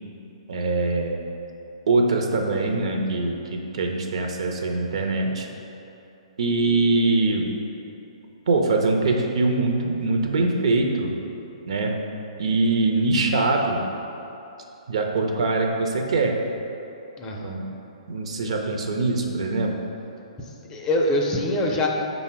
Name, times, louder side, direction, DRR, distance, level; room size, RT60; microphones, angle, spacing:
voice 1, 0.5-1.2 1.9-5.5 6.4-7.5 8.5-11.1 11.7-12.0 12.4-13.8 14.9-16.4 17.4-17.6 18.1-19.8, right 3 dB, 60° right, 2 dB, 0.5 m, -23 dB
voice 2, 17.2-17.8 20.7-21.9, left 1 dB, 20° left, -1 dB, 0.5 m, -24 dB
5.2 x 2.0 x 4.7 m, 3.0 s
figure-of-eight pair, 130°, 3 cm